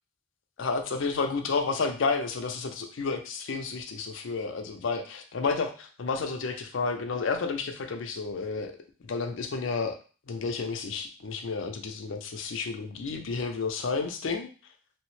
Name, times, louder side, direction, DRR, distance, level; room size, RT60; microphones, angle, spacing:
voice 1, 0.6-8.7 9.0-10.0 10.3-14.5, left 4 dB, 70° left, 6 dB, 0.5 m, -31 dB
3.1 x 2.0 x 3.1 m, 0.37 s
head